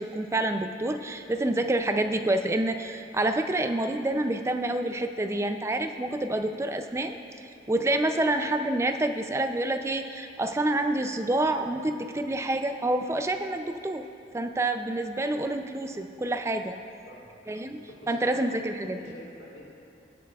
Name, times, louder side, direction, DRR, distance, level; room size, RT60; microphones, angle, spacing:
voice 1, 0.0-7.2 7.7-14.0 14.3-16.8 17.5-17.8 18.1-19.0, right 1 dB, 15° right, 7 dB, 0.3 m, -28 dB
voice 2, 17.1-18.4 18.8-19.7, left 1 dB, 85° left, -4 dB, 1.7 m, -48 dB
18.0 x 7.4 x 2.3 m, 2.7 s
head